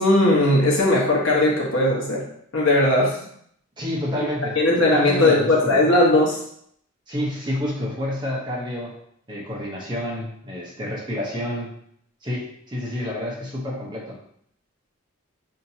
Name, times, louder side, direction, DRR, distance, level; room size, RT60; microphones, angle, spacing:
voice 1, 0.0-2.2 2.5-3.2 4.5-6.4, left 1 dB, 65° left, -3 dB, 1.1 m, -18 dB
voice 2, 3.8-4.6 4.9-5.8 7.1-8.9 9.3-11.7 12.2-14.2, left 1 dB, 20° right, -4 dB, 0.9 m, -29 dB
5.8 x 2.8 x 2.7 m, 0.68 s
head